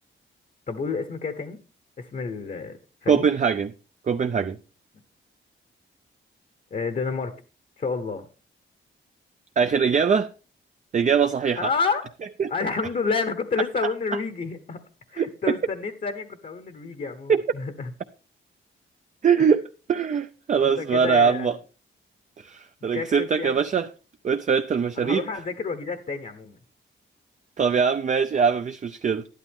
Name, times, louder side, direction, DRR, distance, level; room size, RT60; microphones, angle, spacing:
voice 1, 0.7-1.6 2.0-3.2 6.7-7.3 7.8-8.3 11.6-12.1 12.5-14.8 15.1-17.9 20.8-21.6 22.9-23.6 25.0-26.6, left 4 dB, 40° left, 1.0 m, -29 dB
voice 2, 3.1-3.7 4.1-4.6 9.6-10.3 10.9-11.7 12.4-12.5 15.2-15.5 17.3-17.4 19.2-19.6 19.9-21.6 22.4-23.9 24.2-25.3 27.6-29.3, right 6 dB, 35° right, 0.5 m, -22 dB
12.0 x 11.5 x 3.5 m
wide cardioid pair, 175°, 21 cm